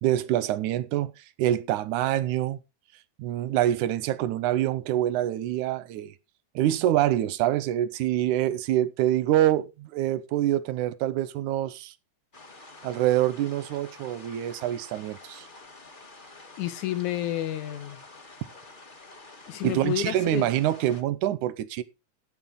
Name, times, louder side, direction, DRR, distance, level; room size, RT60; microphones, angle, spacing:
voice 1, 0.0-1.1 1.4-2.6 3.2-6.1 6.6-11.9 12.8-15.5 19.6-21.8, right 13 dB, 90° right, 2.2 m, -25 dB
sound 1, 12.3-21.0, left 2 dB, 25° left, 1.1 m, -48 dB
voice 2, 16.6-18.0 19.5-20.5, left 12 dB, 80° left, 2.7 m, -30 dB
13.0 x 9.4 x 3.8 m
omnidirectional pair, 3.4 m